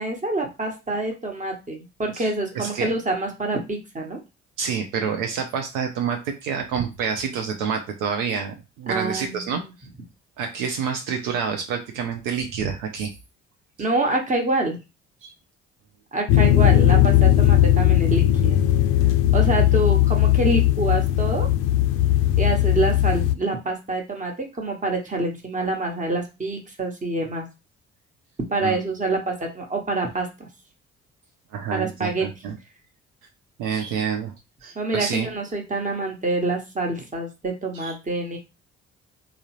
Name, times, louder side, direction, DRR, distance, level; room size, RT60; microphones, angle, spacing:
voice 1, 0.0-4.2 8.9-9.7 13.8-14.8 16.1-18.6 19.3-21.5 22.4-27.4 28.5-30.5 31.7-32.3 34.7-38.4, right 2 dB, 20° right, 2 dB, 1.2 m, -26 dB
voice 2, 2.1-2.9 4.6-9.6 10.4-13.1 15.2-15.3 28.6-28.8 31.5-32.6 33.6-34.3 34.6-35.3 37.7-37.9, right 6 dB, 65° right, 4 dB, 0.6 m, -28 dB
sound 1, 16.3-23.3, left 13 dB, 60° left, 0.4 m, -18 dB
3.6 x 2.1 x 3.0 m, 0.27 s
figure-of-eight pair, 45°, 35 cm